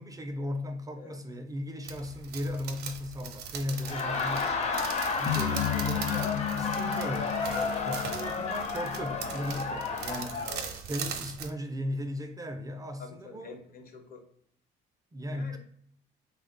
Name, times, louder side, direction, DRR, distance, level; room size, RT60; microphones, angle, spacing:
voice 1, 0.0-4.7 5.2-10.4 10.9-13.6 15.1-15.6, left 1 dB, 20° right, 0.4 m, -37 dB
sound 1, 1.8-11.5, right 7 dB, 70° right, 0.6 m, -41 dB
Laughter, 3.7-10.6, left 4 dB, 40° left, 0.7 m, -32 dB
sound 2, 5.3-9.6, left 9 dB, 85° left, 0.4 m, -34 dB
voice 2, 10.4-10.9 13.0-14.3 15.3-15.6, left 3 dB, 60° left, 0.9 m, -47 dB
3.4 x 2.2 x 3.7 m
cardioid pair, 110°, 17 cm